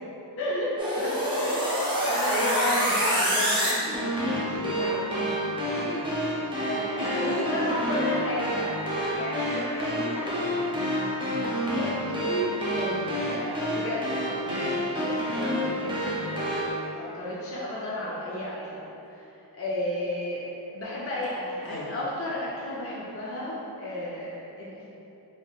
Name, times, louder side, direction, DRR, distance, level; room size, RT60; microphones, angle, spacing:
voice 1, 0.4-1.1 1.4-3.7 4.2-4.4 6.5-8.8 9.1-10.3 11.5-18.8 19.1-24.9, left 1 dB, 35° left, -7 dB, 0.5 m, -33 dB
sound 1, 0.8-16.7, equal, 10° right, 0.6 m, -28 dB
voice 2, 1.9-6.1 6.9-8.0 8.9-9.1 9.4-11.1 12.8-13.2 14.5-14.7 21.6-22.0, equal, 65° left, -7 dB, 0.8 m, -36 dB
3.5 x 2.6 x 2.3 m, 3.0 s
wide cardioid pair, 45°, 40 cm